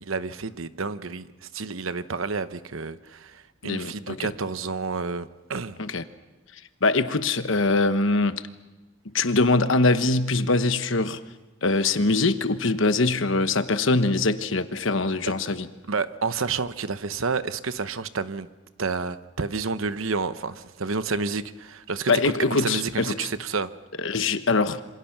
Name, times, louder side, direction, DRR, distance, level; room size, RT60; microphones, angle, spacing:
voice 1, 0.0-5.8 15.2-15.3 15.9-18.5 18.8-23.7, right 4 dB, 75° right, 12 dB, 0.9 m, -30 dB
voice 2, 3.6-4.2 5.8-6.0 6.8-8.4 9.1-11.2 11.6-15.7 22.1-23.1 24.0-24.8, left 3 dB, 65° left, 10 dB, 1.1 m, -23 dB
27.5 x 26.0 x 6.0 m, 1.1 s
head